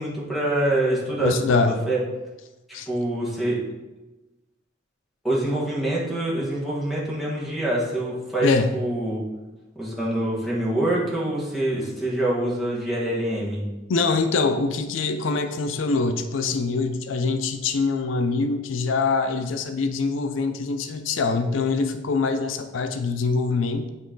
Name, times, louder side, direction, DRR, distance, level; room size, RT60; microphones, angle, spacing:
voice 1, 0.0-2.0 2.9-3.6 5.2-9.2 9.7-13.7, right 1 dB, ahead, -7 dB, 1.4 m, -25 dB
voice 2, 1.2-1.7 2.7-2.9 8.4-8.7 13.9-23.9, left 4 dB, 85° left, 8 dB, 0.4 m, -24 dB
8.8 x 3.0 x 3.8 m, 1.1 s
head